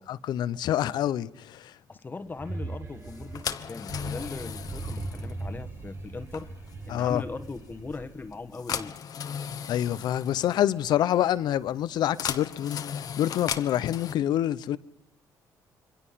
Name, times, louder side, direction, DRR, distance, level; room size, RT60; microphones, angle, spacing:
voice 1, 0.1-1.7 6.9-7.2 9.7-14.8, left 11 dB, 70° left, 0.8 m, -27 dB
voice 2, 1.9-6.5 6.9-8.9, left 3 dB, 25° left, 1.4 m, -39 dB
sound 1, 2.2-8.6, right 2 dB, 30° right, 1.8 m, -39 dB
sound 2, 3.0-14.1, left 8 dB, 55° left, 1.2 m, -37 dB
27.0 x 23.0 x 5.7 m
cardioid pair, 85°, 7 cm